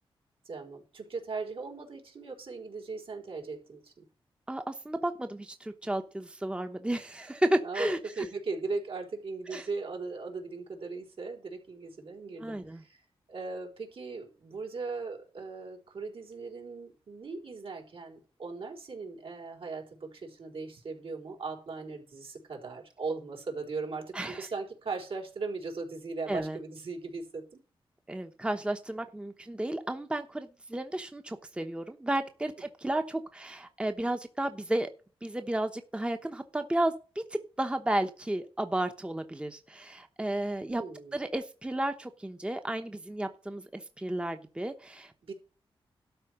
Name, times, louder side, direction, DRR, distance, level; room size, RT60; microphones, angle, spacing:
voice 1, 0.4-4.0 7.6-27.6 40.7-41.2 45.2-45.3, right 4 dB, 70° right, 0 dB, 4.5 m, -38 dB
voice 2, 4.5-8.3 9.5-9.7 12.4-12.8 24.1-24.5 26.3-26.6 28.1-34.9 35.2-40.8 41.1-45.1, right 1 dB, 10° right, 7 dB, 1.0 m, -33 dB
12.5 x 4.7 x 8.1 m, 0.35 s
wide cardioid pair, 105°, 10 cm